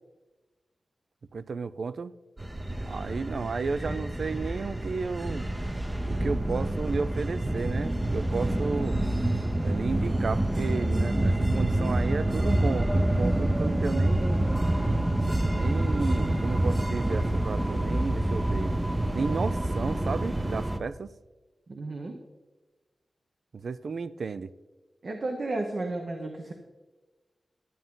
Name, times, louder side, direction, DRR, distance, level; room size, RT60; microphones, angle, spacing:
voice 1, 1.3-2.1 2.8-5.5 6.1-9.0 9.5-14.4 15.5-18.7 19.1-21.1 23.5-24.5, right 4 dB, 75° right, 16 dB, 0.4 m, -33 dB
sound 1, 2.4-20.8, right 1 dB, 15° right, 0.6 m, -27 dB
voice 2, 21.7-22.2 25.0-26.5, right 2 dB, 55° right, 4 dB, 0.9 m, -33 dB
11.0 x 10.5 x 3.8 m, 1.2 s
wide cardioid pair, 120°, 0 cm